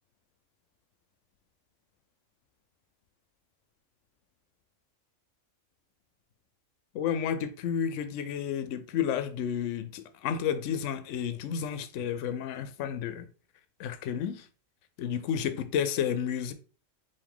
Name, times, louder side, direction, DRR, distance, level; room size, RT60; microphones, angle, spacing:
voice 1, 6.9-13.3 13.8-14.4 15.0-16.5, left 8 dB, 70° left, 0.9 m, -31 dB
4.8 x 2.7 x 3.5 m
omnidirectional pair, 1.4 m